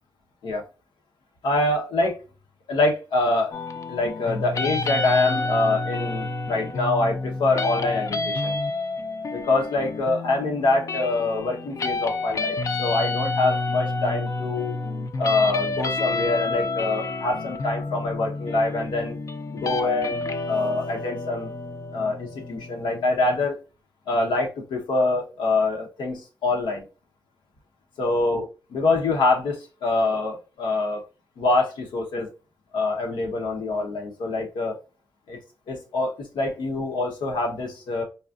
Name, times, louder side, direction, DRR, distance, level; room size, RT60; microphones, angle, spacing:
voice 1, 1.4-2.2 2.7-3.5 3.9-8.6 9.3-14.7 15.2-19.2 19.5-20.2 20.5-21.5 21.9-23.6 24.1-26.8 28.0-28.5 28.7-31.0 31.4-32.3 32.7-34.8 35.3-35.4 35.7-38.0, left 2 dB, 85° left, 1 dB, 1.0 m, -25 dB
sound 1, 3.5-23.5, left 3 dB, 45° left, 0.5 m, -29 dB
4.0 x 2.4 x 2.5 m, 0.32 s
cardioid pair, 70°, 8 cm